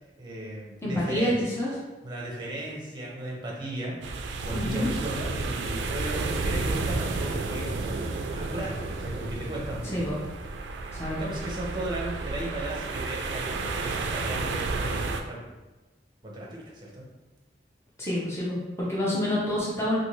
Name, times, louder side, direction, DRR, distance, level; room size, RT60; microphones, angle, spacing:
voice 1, 0.2-1.4 2.0-10.2 10.7-10.8 11.1-15.5 16.2-17.1, right 1 dB, 25° right, -3 dB, 0.6 m, -36 dB
voice 2, 0.8-1.7 4.5-4.9 9.9-10.2 10.9-11.2 18.0-20.0, left 1 dB, 15° left, -6 dB, 0.6 m, -28 dB
sound 1, 4.0-15.2, right 3 dB, 90° right, 0.3 m, -31 dB
2.7 x 2.6 x 3.0 m, 1.1 s
head